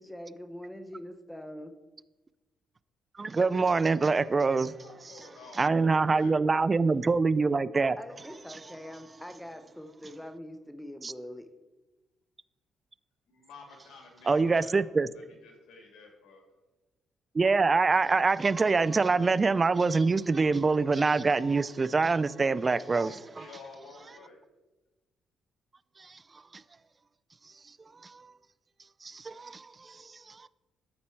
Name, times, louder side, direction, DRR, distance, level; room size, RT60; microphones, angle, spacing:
voice 1, 0.0-1.7 8.0-11.5, equal, 5° left, 0.7 m, -43 dB
voice 2, 3.2-4.8 5.6-8.0 11.0-11.1 14.3-15.1 17.3-23.5 26.0-26.2 26.5-26.6 28.0-28.3 29.0-30.5, right 4 dB, 30° right, 0.3 m, -25 dB
voice 3, 4.8-5.8 6.1-6.7 13.3-16.5 22.9-24.4, left 4 dB, 80° left, 2.1 m, -52 dB
12.5 x 4.3 x 4.4 m
cardioid pair, 90°, 0 cm